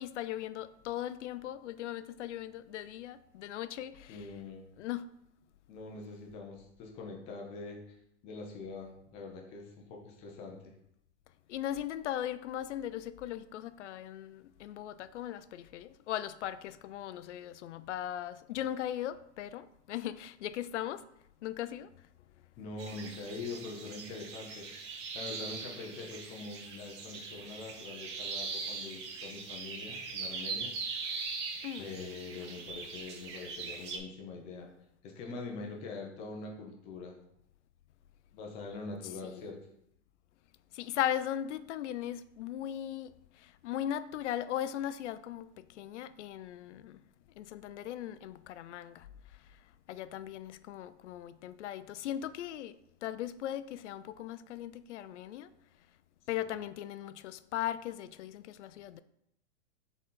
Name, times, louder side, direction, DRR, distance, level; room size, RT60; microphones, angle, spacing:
voice 1, 0.0-4.3 4.8-5.1 11.5-21.0 21.4-21.9 31.6-31.9 39.3-39.5 40.7-47.0 47.4-49.6 49.9-52.8 53.0-55.5 56.3-59.0, left 11 dB, 75° left, 0.5 m, -38 dB
voice 2, 4.1-4.6 5.7-8.0 8.2-10.7 22.6-24.7 25.1-31.1 31.8-34.7 35.0-37.2 38.3-39.6 56.4-56.5, left 3 dB, 15° left, 0.6 m, -44 dB
sound 1, 22.8-34.0, right 4 dB, 25° right, 0.4 m, -41 dB
6.3 x 4.0 x 3.8 m
supercardioid pair, 170°, 36 cm